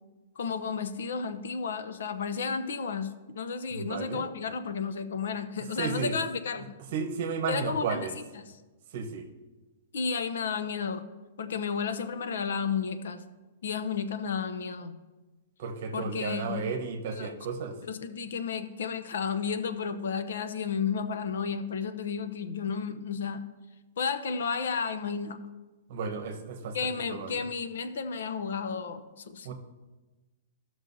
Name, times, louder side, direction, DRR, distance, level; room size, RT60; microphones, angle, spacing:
voice 1, 0.4-6.8 7.5-8.1 8.5-8.6 9.9-11.0 11.4-13.2 13.6-15.0 15.9-16.6 17.2-17.3 17.8-23.4 24.0-25.4 26.7-29.5, left 6 dB, 80° left, 10 dB, 0.7 m, -32 dB
voice 2, 3.7-4.2 5.8-6.1 6.9-8.1 8.9-9.3 15.6-17.7 25.9-26.8 27.1-27.4 29.4-29.5, right 5 dB, 50° right, 5 dB, 1.0 m, -33 dB
15.0 x 6.2 x 2.7 m, 1.2 s
hypercardioid pair, 170°, 0 cm